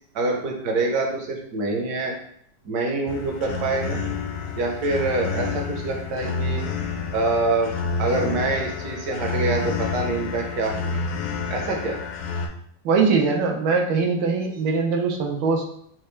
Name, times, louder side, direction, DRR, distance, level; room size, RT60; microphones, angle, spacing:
voice 1, 0.1-2.1 2.6-4.0 4.5-6.6 7.1-7.7 8.0-11.0 11.5-12.0, right 3 dB, 65° right, 1 dB, 1.2 m, -25 dB
sound 1, 3.1-12.5, left 4 dB, 80° left, 0.8 m, -29 dB
voice 2, 12.8-15.7, right 4 dB, 85° right, 1 dB, 1.4 m, -21 dB
4.3 x 2.3 x 3.1 m, 0.65 s
omnidirectional pair, 2.0 m